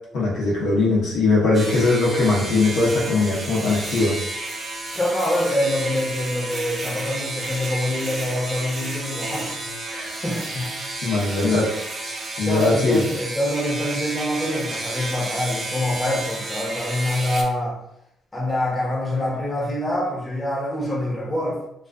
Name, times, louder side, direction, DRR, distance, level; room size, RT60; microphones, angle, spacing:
voice 1, 0.1-4.2 11.0-11.7 12.4-13.0, left 3 dB, 80° left, -5 dB, 0.9 m, -20 dB
sound 1, 1.5-17.4, right 2 dB, 35° right, 0.5 m, -31 dB
voice 2, 4.9-9.5 9.9-10.7 12.4-17.8 18.3-21.6, left 1 dB, 20° left, -4 dB, 0.8 m, -25 dB
2.4 x 2.3 x 2.3 m, 0.79 s
cardioid pair, 90°, 0 cm